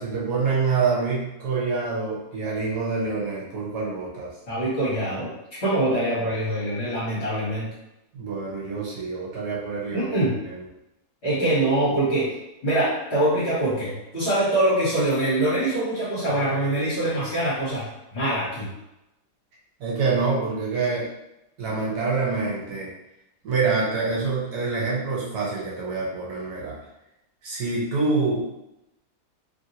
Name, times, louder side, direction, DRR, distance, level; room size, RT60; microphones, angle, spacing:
voice 1, 0.0-4.3 8.1-10.6 19.8-21.1 21.6-22.9 23.4-26.8 27.4-28.5, right 4 dB, 65° right, -5 dB, 1.3 m, -26 dB
voice 2, 4.5-5.3 5.6-7.7 9.9-10.3 11.2-12.3 12.6-17.8 18.1-18.7, right 1 dB, 40° left, -9 dB, 1.4 m, -24 dB
3.1 x 2.6 x 2.7 m, 0.91 s
omnidirectional pair, 1.9 m